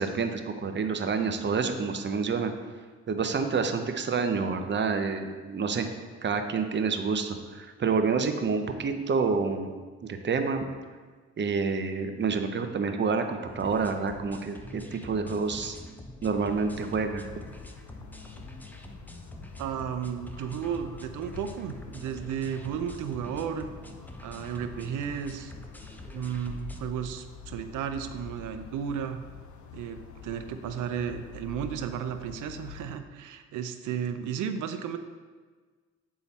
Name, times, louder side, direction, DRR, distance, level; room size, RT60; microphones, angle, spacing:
voice 1, 0.0-2.5 3.1-5.9 6.2-10.6 11.4-15.8 16.2-17.2, right 5 dB, 35° right, 6 dB, 0.7 m, -28 dB
sound 1, 13.5-26.8, left 1 dB, 5° left, 0.6 m, -46 dB
sound 2, 16.2-33.0, left 6 dB, 70° left, 0.7 m, -47 dB
voice 2, 19.6-23.7 24.2-25.5 26.1-29.2 29.7-35.0, right 8 dB, 80° right, 8 dB, 0.6 m, -33 dB
8.3 x 3.8 x 4.1 m, 1.4 s
cardioid pair, 90°, 30 cm